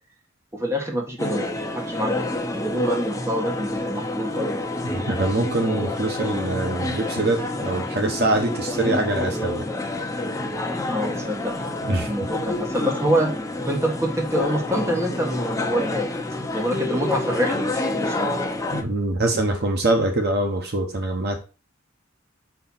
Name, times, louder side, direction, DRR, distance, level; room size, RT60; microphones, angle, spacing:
voice 1, 0.5-4.6 10.9-11.5 12.1-13.3 13.7-16.1 16.5-18.3, equal, 15° right, 0 dB, 1.6 m, -26 dB
sound 1, 1.2-18.8, left 2 dB, 15° left, 0.9 m, -28 dB
voice 2, 4.8-9.7 11.8-12.1 18.7-21.4, right 2 dB, 50° right, 4 dB, 1.1 m, -24 dB
5.5 x 4.6 x 5.7 m, 0.32 s
head